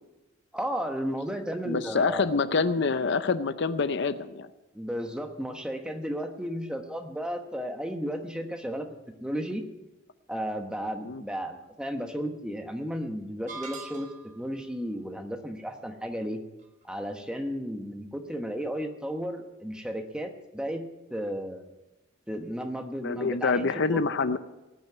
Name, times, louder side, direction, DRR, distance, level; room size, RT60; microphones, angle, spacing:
voice 1, 0.5-2.5 4.7-8.9 9.2-9.6 10.3-14.1 14.3-16.4 16.8-20.8 21.1-21.7 22.3-24.4, equal, 5° right, 5 dB, 1.2 m, -34 dB
voice 2, 1.7-4.5 11.0-11.2 23.0-24.4, left 4 dB, 60° left, 12 dB, 0.6 m, -26 dB
sound 1, 13.5-14.5, right 4 dB, 35° right, 1.8 m, -41 dB
19.0 x 6.3 x 9.3 m, 1.0 s
head